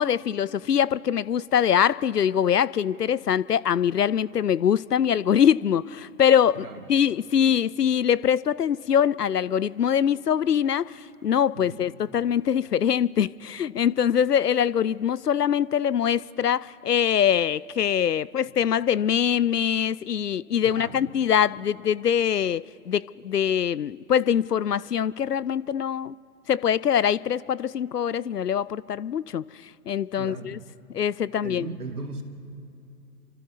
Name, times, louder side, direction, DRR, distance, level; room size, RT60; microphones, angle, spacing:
voice 1, 0.0-26.1 26.5-29.4 29.9-30.6 30.9-31.7, left 9 dB, 90° left, 0.6 m, -23 dB
voice 2, 11.5-11.9 20.6-21.1 30.2-30.7 31.4-32.2, right 3 dB, 75° right, 2.2 m, -37 dB
28.5 x 26.0 x 4.1 m
figure-of-eight pair, 135°, 47 cm